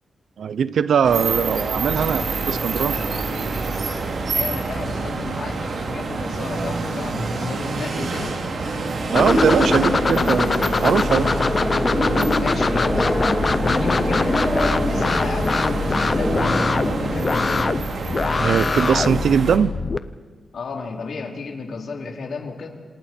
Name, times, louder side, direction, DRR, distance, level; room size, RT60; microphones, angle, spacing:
voice 1, 0.4-2.9 9.1-11.3 18.4-19.7, right 7 dB, 85° right, 16 dB, 0.7 m, -20 dB
sound 1, 1.0-19.6, right 3 dB, 65° right, 3.0 m, -27 dB
voice 2, 4.3-8.4 12.4-13.1 13.6-14.4 14.7-17.5 20.5-22.7, left 4 dB, 65° left, 1 dB, 3.3 m, -32 dB
sound 2, 9.1-20.0, left 4 dB, 30° left, 0.7 m, -23 dB
sound 3, 9.1-17.6, left 1 dB, 5° left, 3.0 m, -25 dB
27.5 x 27.0 x 4.5 m, 1.4 s
wide cardioid pair, 175°, 0 cm